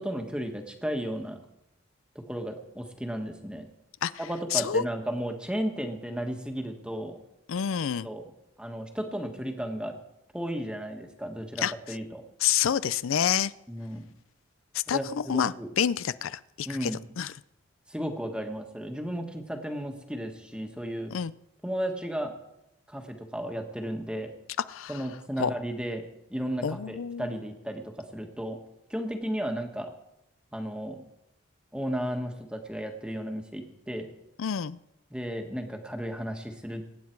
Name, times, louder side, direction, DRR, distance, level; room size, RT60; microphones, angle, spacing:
voice 1, 0.0-1.4 2.3-3.6 4.2-7.2 8.0-8.3 8.6-9.9 10.3-12.2 13.7-14.1 14.9-15.7 16.6-17.0 17.9-21.1 21.6-22.3 22.9-24.3 24.9-28.6 28.9-29.9 30.5-31.0 31.7-34.1 35.1-36.9, equal, 5° right, 4 dB, 1.5 m, -34 dB
voice 2, 4.5-4.8 7.5-8.1 11.6-11.7 12.4-13.5 14.7-16.9 17.2-17.3 21.1-21.3 24.7-25.0 25.4-25.5 26.6-27.3 34.4-34.8, left 8 dB, 80° left, 17 dB, 0.4 m, -28 dB
24.0 x 9.5 x 4.6 m, 0.86 s
head